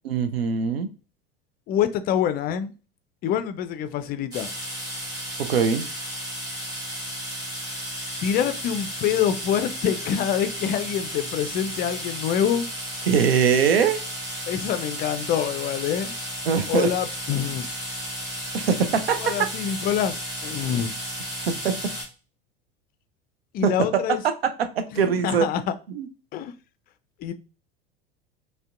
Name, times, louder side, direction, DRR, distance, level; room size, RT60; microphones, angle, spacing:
voice 1, 0.0-0.9 5.4-5.9 13.1-14.0 16.5-16.9 18.5-19.5 21.6-21.7 23.6-23.7 24.2-24.7 24.9-25.5 25.9-26.1, right 7 dB, 75° right, 0.5 m, -22 dB
voice 2, 1.7-2.7 3.2-4.5 8.2-12.7 14.5-16.1 16.7-17.7 19.2-20.9 23.5-24.2 24.9-25.6 26.3-26.5 27.2-27.3, left 9 dB, 30° left, 0.4 m, -26 dB
sound 1, 4.3-22.0, equal, 15° right, 1.7 m, -33 dB
5.0 x 2.2 x 2.4 m
figure-of-eight pair, 75°, 30 cm